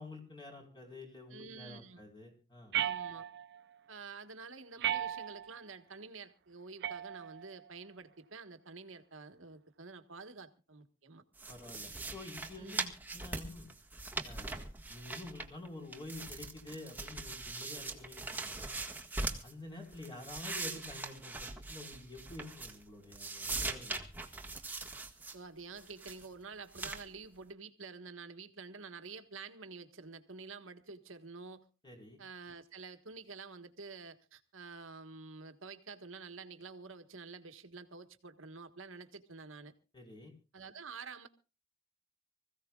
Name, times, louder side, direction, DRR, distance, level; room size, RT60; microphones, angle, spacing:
voice 1, 0.0-2.7 11.5-12.8 13.1-13.7 14.2-18.8 19.4-24.1 31.8-32.2 39.9-40.3, left 2 dB, 25° left, 4.8 m, -49 dB
voice 2, 1.3-2.0 2.8-3.3 3.9-11.2 12.6-12.9 25.3-31.7 32.2-39.7 40.5-41.3, right 4 dB, 80° right, 1.5 m, -49 dB
sound 1, 2.7-3.6 4.8-5.6 6.8-7.6, right 11 dB, 60° right, 0.7 m, -36 dB
sound 2, 11.4-15.7 15.9-19.5 19.9-22.9 23.1-25.4 25.8-26.3 26.7-27.0, right 3 dB, 10° right, 1.7 m, -41 dB
25.5 x 15.5 x 2.4 m
head